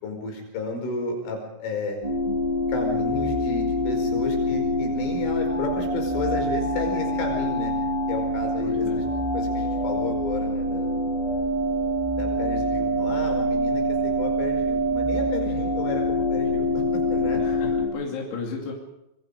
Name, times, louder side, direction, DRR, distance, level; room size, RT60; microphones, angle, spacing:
voice 1, 0.0-2.0 2.7-7.7 8.1-9.0 9.3-10.9 12.2-17.4, left 3 dB, 75° left, 3 dB, 7.6 m, -32 dB
sound 1, 2.0-17.9, equal, 5° right, 6.3 m, -25 dB
voice 2, 8.6-9.1 17.3-18.7, left 4 dB, 60° left, -1 dB, 4.6 m, -34 dB
26.0 x 23.0 x 5.2 m, 0.85 s
omnidirectional pair, 5.7 m